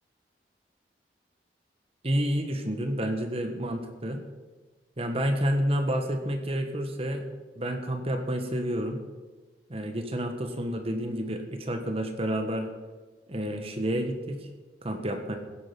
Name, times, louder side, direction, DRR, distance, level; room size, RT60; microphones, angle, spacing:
voice 1, 2.0-4.2 5.0-7.3 7.6-9.0 9.7-12.7 13.3-14.5 14.8-15.4, equal, 35° right, 6 dB, 1.4 m, -29 dB
16.0 x 8.8 x 6.1 m, 1.3 s
head